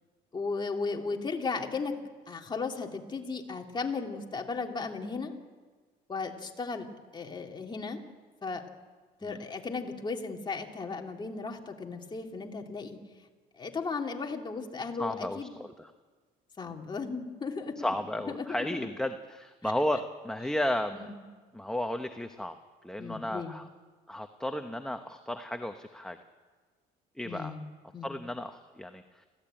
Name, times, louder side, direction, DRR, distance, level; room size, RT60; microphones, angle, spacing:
voice 1, 0.3-2.0 2.3-5.3 6.1-6.9 7.1-8.0 8.4-8.6 9.2-13.0 13.6-15.6 16.6-17.8 18.3-18.8 20.9-21.2 23.0-23.5 27.2-27.6 27.9-28.1, left 4 dB, 25° left, 2 dB, 2.7 m, -35 dB
voice 2, 15.0-15.9 16.7-16.8 17.8-21.1 21.5-22.5 22.8-23.7 24.1-26.2 27.2-27.5 28.0-29.3, left 1 dB, 5° left, 6 dB, 1.1 m, -34 dB
26.0 x 16.0 x 9.0 m, 1.4 s
cardioid pair, 110°, 17 cm